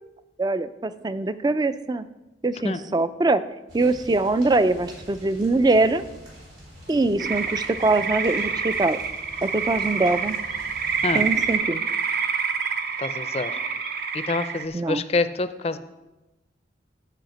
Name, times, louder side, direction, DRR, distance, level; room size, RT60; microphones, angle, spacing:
voice 1, 0.4-2.1 2.4-3.4 3.7-6.0 6.9-9.0 9.4-10.4 11.1-11.8 14.7-15.0, right 2 dB, 20° right, 13 dB, 0.3 m, -23 dB
sound 1, 3.7-11.6, equal, 85° right, 4.3 m, -45 dB
sound 2, 7.2-14.6, right 6 dB, 55° right, 0.7 m, -27 dB
voice 2, 13.0-13.5 14.3-15.8, left 3 dB, 35° left, 12 dB, 0.5 m, -26 dB
10.5 x 4.9 x 7.8 m, 1.0 s
head